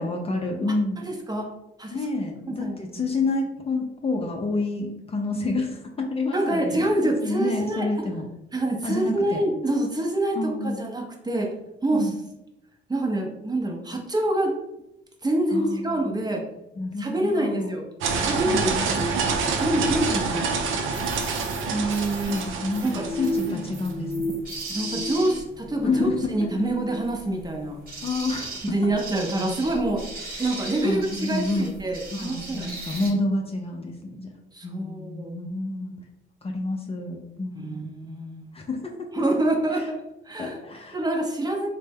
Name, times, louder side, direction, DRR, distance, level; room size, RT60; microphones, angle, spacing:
voice 1, 0.0-1.1 1.9-6.9 7.2-8.3 8.8-9.4 10.3-10.8 11.9-12.1 15.5-16.0 16.8-17.8 18.4-19.1 22.3-24.4 25.2-25.3 25.8-26.5 28.0-28.8 30.8-31.7 32.1-34.3 34.6-35.9 36.4-37.8 38.5-39.2 39.7-39.9 40.4-41.0, left 2 dB, 30° left, 1 dB, 0.5 m, -29 dB
voice 2, 1.1-1.5 1.8-2.0 2.5-2.8 6.3-7.9 8.5-10.4 10.6-11.5 11.8-12.1 12.9-14.5 15.2-16.4 17.0-17.8 18.2-18.7 19.6-20.5 21.7-22.4 22.8-23.0 24.7-27.8 28.6-30.0 30.4-32.8 34.5-35.3 37.5-38.6 39.1-40.6 40.9-41.7, right 1 dB, 20° right, 0 dB, 0.6 m, -26 dB
sound 1, 18.0-23.8, right 4 dB, 85° right, 0.5 m, -27 dB
Baby pionus (parrots) screaming, 20.9-33.1, right 2 dB, 45° right, 1.2 m, -38 dB
sound 2, 22.5-24.3 24.6-26.2 26.6-27.0, left 1 dB, 85° left, 0.5 m, -32 dB
3.2 x 2.1 x 3.4 m, 0.90 s
cardioid pair, 90°, 20 cm